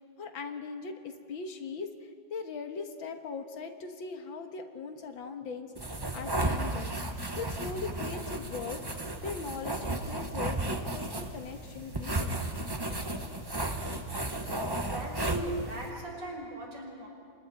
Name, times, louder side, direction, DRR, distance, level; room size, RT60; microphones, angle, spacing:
voice 1, 0.2-1.9 2.3-5.8 6.1-6.9 7.4-12.4, left 4 dB, 80° left, 6 dB, 2.2 m, -40 dB
sound 1, 5.8-15.9, right 1 dB, 15° right, 0.9 m, -34 dB
voice 2, 14.7-17.1, right 2 dB, 70° right, -1 dB, 5.7 m, -38 dB
30.0 x 26.0 x 4.2 m, 2.4 s
omnidirectional pair, 2.1 m